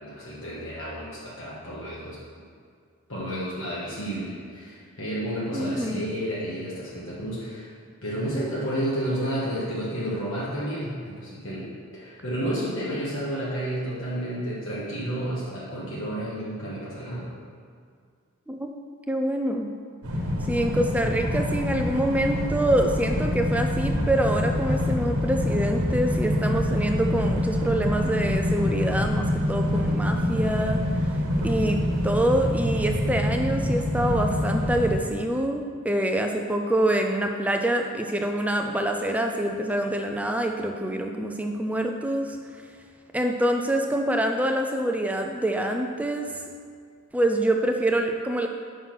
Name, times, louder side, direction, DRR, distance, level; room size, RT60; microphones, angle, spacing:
voice 1, 0.0-2.2 3.1-7.7 8.0-17.3, right 1 dB, 60° left, -7 dB, 1.3 m, -31 dB
voice 2, 5.5-6.0 18.5-18.7 19.1-19.7 20.5-30.8 31.4-42.4 43.1-46.4 47.1-48.5, right 1 dB, 5° right, 4 dB, 0.3 m, -25 dB
sound 1, 20.0-35.0, left 1 dB, 85° right, 1.1 m, -26 dB
5.8 x 5.6 x 5.9 m, 2.2 s
head